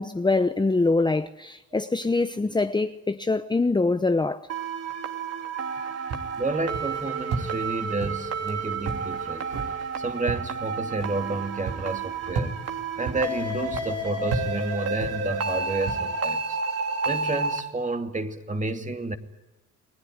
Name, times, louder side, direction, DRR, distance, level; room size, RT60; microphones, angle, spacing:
voice 1, 0.0-4.5, left 3 dB, 15° left, 0.9 m, -24 dB
sound 1, 4.5-17.6, right 4 dB, 55° right, 3.3 m, -31 dB
sound 2, 6.1-16.0, right 4 dB, 85° right, 5.0 m, -36 dB
voice 2, 6.4-9.5 10.0-12.5 13.0-16.6 17.0-19.2, right 2 dB, 25° right, 2.5 m, -30 dB
29.5 x 20.5 x 9.6 m
cardioid pair, 90°, 30 cm